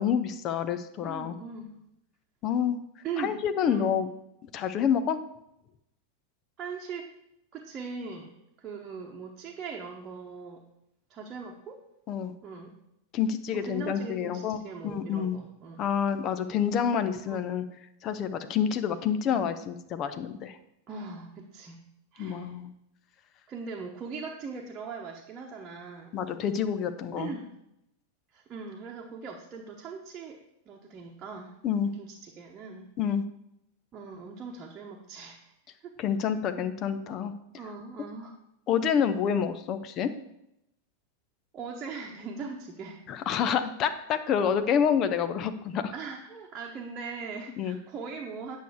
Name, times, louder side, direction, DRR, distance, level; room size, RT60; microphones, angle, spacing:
voice 1, 0.0-1.3 2.4-2.8 3.2-4.1 4.5-5.2 12.1-12.3 13.1-14.6 14.8-15.4 15.8-17.6 18.0-20.6 22.2-22.7 26.1-27.3 31.6-31.9 33.0-33.2 36.0-37.3 38.7-40.1 43.1-45.9 47.6-47.8, left 8 dB, 35° left, 10 dB, 0.7 m, -28 dB
voice 2, 1.0-1.8 3.0-3.9 6.6-7.1 7.5-10.6 11.1-11.8 12.4-12.7 13.5-15.8 17.3-17.4 20.9-21.8 22.1-22.6 23.5-26.1 27.2-27.5 28.3-30.4 30.7-31.6 32.0-32.9 33.9-35.4 35.8-36.0 37.6-38.4 41.5-43.0 45.9-48.6, right 5 dB, 25° right, -1 dB, 1.1 m, -40 dB
9.2 x 6.4 x 4.8 m, 0.82 s
figure-of-eight pair, 90°, 0 cm